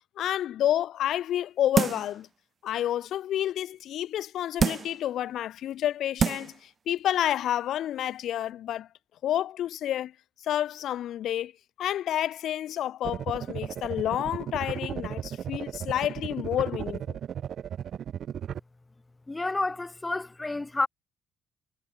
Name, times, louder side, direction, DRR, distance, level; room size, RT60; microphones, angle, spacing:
voice 1, 0.2-2.3 2.6-8.9 9.2-10.1 10.4-11.5 11.8-17.2, left 11 dB, 70° left, 0.5 m, -29 dB
sound 1, 1.8-2.2 2.7-2.8 4.6-5.0 5.7-5.8 6.2-6.6 7.0-7.1, right 6 dB, 45° right, 0.7 m, -26 dB
sound 2, 13.0-18.6, right 9 dB, 65° right, 2.1 m, -35 dB
voice 2, 19.3-20.9, left 2 dB, 20° left, 1.7 m, -30 dB
supercardioid pair, 60°, 0 cm